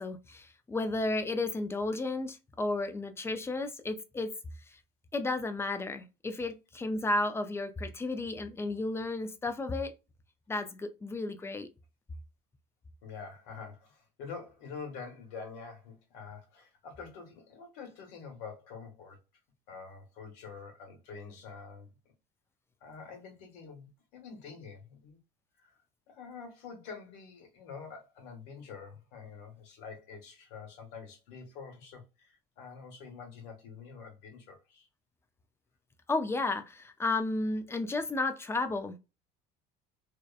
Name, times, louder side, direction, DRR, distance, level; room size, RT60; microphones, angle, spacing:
voice 1, 0.0-4.3 4.7-4.8 5.1-9.9 10.5-11.7 36.1-39.0, left 2 dB, 10° left, 0.3 m, -33 dB
voice 2, 13.0-19.2 19.7-21.9 22.8-25.2 25.6-25.7 26.1-34.9, left 5 dB, 80° left, 1.1 m, -46 dB
2.8 x 2.1 x 2.3 m
supercardioid pair, 110°, 21 cm